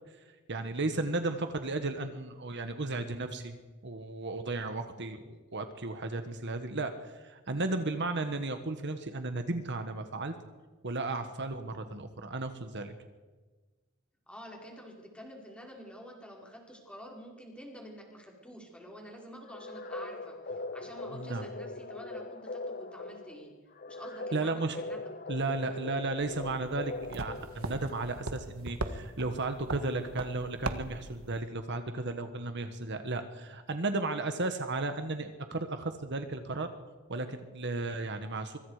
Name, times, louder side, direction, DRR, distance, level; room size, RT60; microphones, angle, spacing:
voice 1, 0.5-3.6 3.8-10.4 10.8-12.9 21.1-21.4 24.3-24.8 25.3-36.7 37.1-38.6, right 2 dB, 55° right, 8 dB, 1.5 m, -34 dB
voice 2, 14.3-20.4 20.7-23.5 23.9-25.0, equal, 5° left, -1 dB, 5.0 m, -48 dB
sound 1, 19.4-27.9, left 2 dB, 45° left, 1.0 m, -41 dB
sound 2, 26.2-31.4, right 2 dB, 85° right, 1.6 m, -40 dB
25.0 x 25.0 x 5.0 m, 1.3 s
head